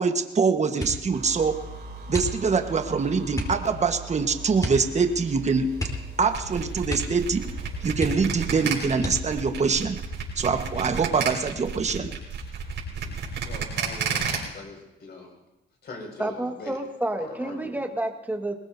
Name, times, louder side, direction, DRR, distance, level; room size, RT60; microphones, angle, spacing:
voice 1, 0.0-1.6 2.1-5.8 6.2-7.5 7.8-10.0 10.4-12.1, right 5 dB, 35° right, 7 dB, 1.4 m, -24 dB
sound 1, 0.7-1.2 2.1-2.7 3.3-3.6 4.6-4.9 5.2-5.3 5.7-6.5 6.8-7.3 7.6-7.7 8.0-8.5 9.0-9.5 10.2-10.8 11.2-11.6, left 1 dB, 20° left, 3.9 m, -33 dB
sound 2, 1.1-8.7, right 2 dB, 55° right, 3.1 m, -40 dB
Pitched and Looped Sputter Top, 6.3-14.4, right 7 dB, 70° right, 5.0 m, -31 dB
voice 2, 13.4-15.3 15.8-16.8 17.2-17.8, left 3 dB, 55° left, 1 dB, 5.8 m, -42 dB
voice 3, 16.2-18.5, right 1 dB, 10° right, 3 dB, 1.8 m, -29 dB
22.0 x 19.5 x 2.7 m, 0.99 s
cardioid pair, 90°, 20 cm